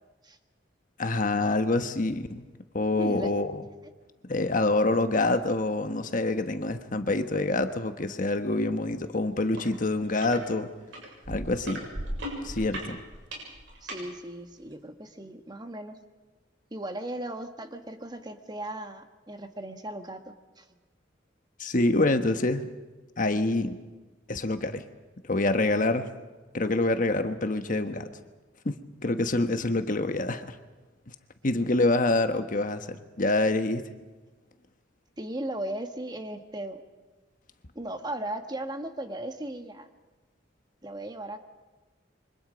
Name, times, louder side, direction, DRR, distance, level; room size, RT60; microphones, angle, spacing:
voice 1, 1.0-2.4 2.7-3.5 4.3-10.7 11.3-11.9 12.4-13.0 21.6-22.7 23.2-23.8 24.3-24.8 25.2-26.1 26.5-28.1 28.6-30.6 31.4-33.8, left 2 dB, 45° left, 8 dB, 1.3 m, -26 dB
voice 2, 3.0-3.3 13.8-16.0 16.7-20.2 20.6-20.7 35.2-36.8 37.7-39.9 40.8-41.4, right 1 dB, 20° right, 7 dB, 1.4 m, -37 dB
sound 1, 9.5-9.7 10.0-10.4 10.9-14.0 14.7-14.8, right 1 dB, 80° right, 7.0 m, -37 dB
27.5 x 24.5 x 5.2 m, 1.2 s
head